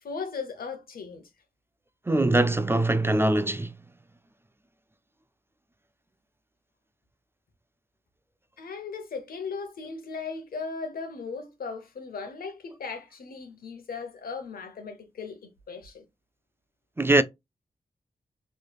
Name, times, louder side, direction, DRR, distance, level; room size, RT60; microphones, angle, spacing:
voice 1, 0.0-1.3 8.6-16.0, left 4 dB, 85° left, 0.9 m, -37 dB
voice 2, 2.1-3.7 17.0-17.2, right 2 dB, 15° right, 0.3 m, -22 dB
3.2 x 3.2 x 2.3 m
cardioid pair, 55°, 15 cm